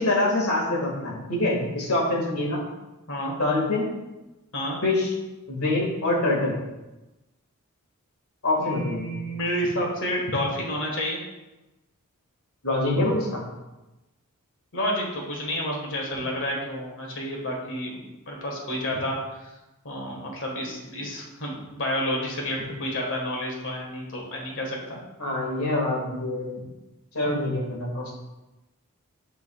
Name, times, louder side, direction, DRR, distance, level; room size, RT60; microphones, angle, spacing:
voice 1, 0.0-2.6 3.4-3.9 4.8-5.1 5.5-6.5 8.4-9.1 12.6-13.4 25.2-26.6 27.1-28.1, left 2 dB, 75° left, -3 dB, 1.9 m, -25 dB
voice 2, 8.6-11.2 14.7-18.0 18.3-19.5 19.8-25.0, equal, 60° left, -1 dB, 1.6 m, -30 dB
10.5 x 3.8 x 2.4 m, 1.0 s
head